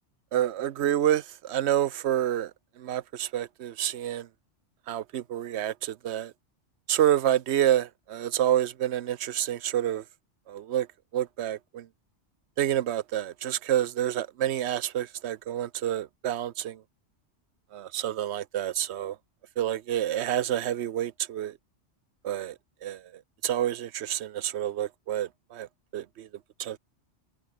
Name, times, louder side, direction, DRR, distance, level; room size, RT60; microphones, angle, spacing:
voice 1, 0.3-2.5 2.8-4.3 4.9-6.3 6.9-10.0 10.5-10.9 11.1-11.9 12.6-16.8 17.7-19.2 19.6-21.6 22.2-22.6 22.8-23.0 23.4-25.7 25.9-26.3 26.6-26.8, right 11 dB, 70° right, 1.0 m, -28 dB
omnidirectional pair, 1.2 m